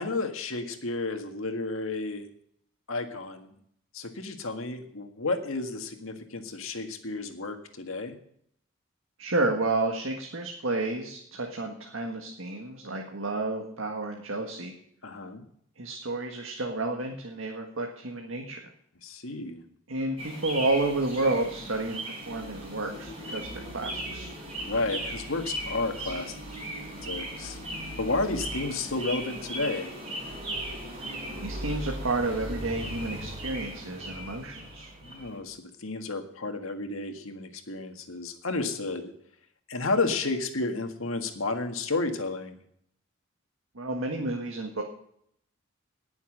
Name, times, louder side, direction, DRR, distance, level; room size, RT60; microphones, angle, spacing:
voice 1, 0.0-2.3 2.9-3.5 3.9-8.2 15.0-15.4 19.0-19.6 24.4-26.4 27.0-27.6 28.0-29.9 35.0-39.1 39.7-42.6, left 3 dB, 80° left, 6 dB, 1.8 m, -32 dB
voice 2, 9.2-14.7 15.8-18.6 19.9-24.3 31.4-34.9 43.7-44.8, right 2 dB, 75° right, 1 dB, 1.7 m, -31 dB
sound 1, 20.2-35.4, right 1 dB, 30° right, 5.0 m, -37 dB
18.5 x 7.1 x 6.6 m, 0.68 s
head